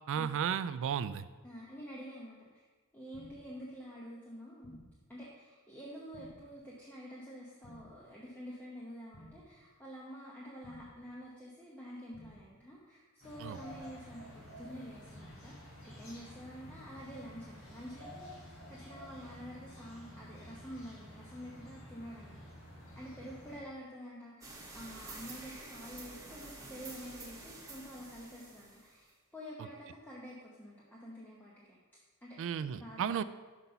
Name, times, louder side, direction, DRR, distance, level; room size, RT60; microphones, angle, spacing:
voice 1, 0.1-1.2 13.4-13.6 32.4-33.2, right 8 dB, 60° right, 14 dB, 0.3 m, -34 dB
voice 2, 1.4-2.6 2.9-4.8 5.1-22.5 22.9-31.8 32.2-33.2, equal, 10° left, -6 dB, 0.9 m, -48 dB
sound 1, 3.1-3.6 4.6-5.1 6.1-6.6 7.6-8.1 9.1-9.6 10.6-11.1 12.1-12.6 13.6-14.1 15.1-15.6 16.6-17.1, equal, 30° left, 1.1 m, -56 dB
sound 2, 13.2-23.6, equal, 65° left, 1.7 m, -51 dB
sound 3, 24.4-29.1, right 2 dB, 15° right, 1.2 m, -49 dB
5.9 x 5.3 x 5.6 m, 1.3 s
head